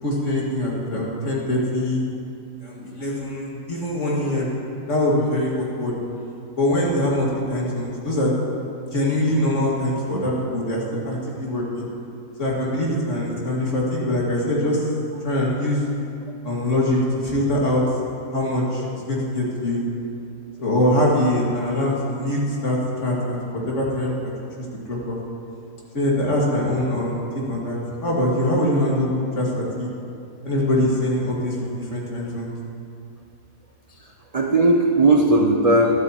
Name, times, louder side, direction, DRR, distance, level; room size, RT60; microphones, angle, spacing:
voice 1, 0.0-2.0 2.6-4.5 4.9-5.9 6.6-8.3 8.9-11.8 12.4-14.8 15.2-15.8 16.4-17.8 18.3-19.8 20.6-23.4 23.7-24.3 24.9-25.2 25.9-29.9 30.4-32.6, left 1 dB, 50° left, -4 dB, 2.4 m, -23 dB
voice 2, 33.9-36.0, right 2 dB, 60° right, 1 dB, 0.3 m, -18 dB
23.0 x 8.1 x 3.0 m, 2.5 s
omnidirectional pair, 1.7 m